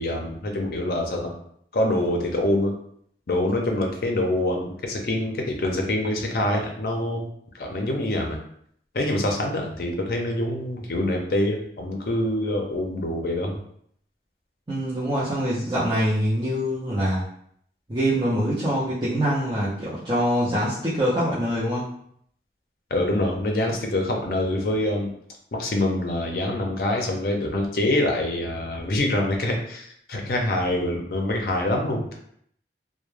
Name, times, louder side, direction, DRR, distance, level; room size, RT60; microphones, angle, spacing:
voice 1, 0.0-1.3 1.7-2.7 3.3-7.3 7.5-8.4 8.9-13.6 22.9-25.1 25.5-32.2, left 1 dB, 55° left, 1 dB, 0.5 m, -25 dB
voice 2, 14.7-17.3 17.9-21.9, equal, 25° right, -11 dB, 0.5 m, -24 dB
2.1 x 2.1 x 3.1 m, 0.67 s
head